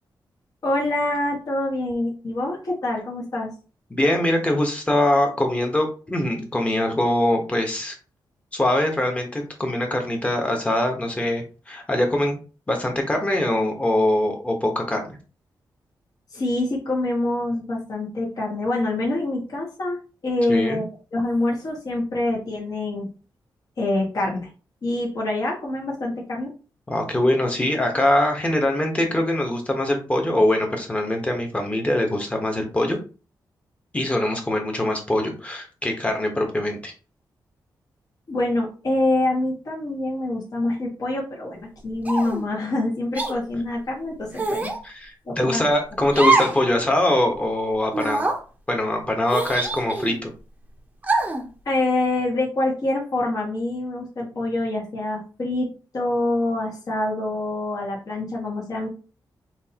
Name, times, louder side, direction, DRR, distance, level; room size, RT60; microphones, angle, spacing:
voice 1, 0.6-3.5 16.3-20.8 21.1-23.1 23.8-24.5 24.8-26.5 38.3-44.7 45.2-45.6 51.6-58.9, left 2 dB, 50° left, -4 dB, 1.6 m, -25 dB
voice 2, 3.9-7.9 8.5-12.4 12.7-15.2 20.5-20.8 26.9-33.0 33.9-36.9 44.8-48.3 48.7-50.3, left 1 dB, 15° left, 2 dB, 1.2 m, -23 dB
sound 1, 42.0-42.4 43.1-43.3 44.3-44.8 46.1-46.6 47.0-47.1 47.9-48.4 49.3-50.2 51.0-51.4, right 3 dB, 20° right, 0.8 m, -23 dB
6.1 x 2.7 x 2.9 m, 0.35 s
wide cardioid pair, 135°, 8 cm